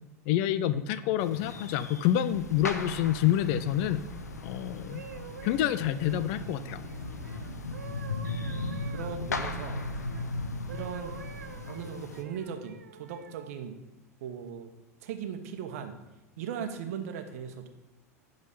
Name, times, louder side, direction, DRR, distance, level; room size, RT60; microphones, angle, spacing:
voice 1, 0.3-4.0 4.4-5.0 5.4-6.8, left 11 dB, 55° left, 14 dB, 0.5 m, -27 dB
sound 1, 1.2-12.2, left 3 dB, 85° left, 0.8 m, -37 dB
sound 2, 2.3-11.6, right 2 dB, 5° right, 1.8 m, -48 dB
sound 3, 4.9-10.3 10.7-13.6 14.2-14.5, right 7 dB, 80° right, 0.6 m, -48 dB
voice 2, 8.4-9.8 10.7-11.1 11.7-13.8 14.2-14.7 15.0-15.9 16.4-17.7, right 7 dB, 65° right, 7 dB, 1.2 m, -38 dB
11.0 x 4.0 x 6.7 m, 0.96 s
hypercardioid pair, 85°, 9 cm